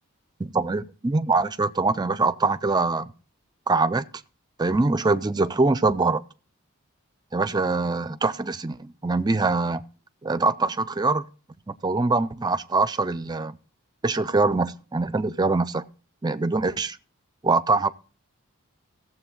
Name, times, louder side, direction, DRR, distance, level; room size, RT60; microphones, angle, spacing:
voice 1, 0.4-3.1 3.7-4.1 4.6-6.2 7.3-9.8 10.2-11.2 11.7-13.6 14.0-15.9 16.2-17.0 17.4-17.9, right 3 dB, 20° right, 0.4 m, -23 dB
16.0 x 7.4 x 3.8 m
head